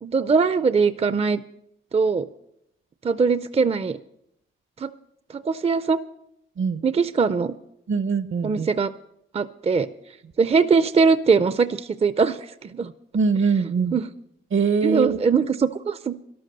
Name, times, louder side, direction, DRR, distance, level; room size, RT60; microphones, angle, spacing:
voice 1, 0.0-1.4 1.9-2.3 3.0-4.0 4.8-4.9 5.3-6.0 6.8-7.5 8.4-8.9 9.3-9.9 10.4-12.9 13.9-14.0 14.8-16.1, right 5 dB, 30° right, 14 dB, 0.4 m, -21 dB
voice 2, 7.9-8.7 13.1-14.0 14.5-15.2, right 5 dB, 70° right, 13 dB, 0.9 m, -22 dB
13.0 x 12.5 x 6.6 m, 0.76 s
wide cardioid pair, 135°, 21 cm